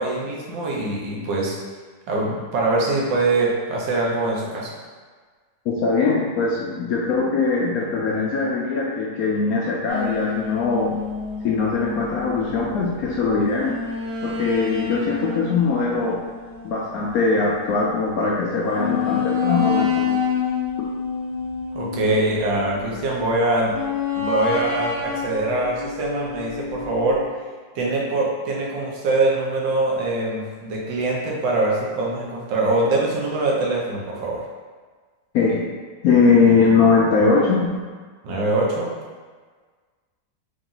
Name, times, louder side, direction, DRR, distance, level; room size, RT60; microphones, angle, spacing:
voice 1, 0.0-1.6 2.1-4.7 21.7-23.7 24.2-27.2 27.7-34.4 38.2-38.9, right 2 dB, 80° right, -3 dB, 1.5 m, -23 dB
voice 2, 5.7-11.0 11.4-13.8 14.2-16.3 16.6-20.2 20.8-20.9 35.3-35.7 36.0-37.8, left 4 dB, 70° left, -3 dB, 0.8 m, -21 dB
sound 1, 9.9-17.6 18.0-18.1 18.7-23.2 23.7-27.2, left 6 dB, 30° left, 1.0 m, -28 dB
3.8 x 2.9 x 3.8 m, 1.5 s
omnidirectional pair, 1.9 m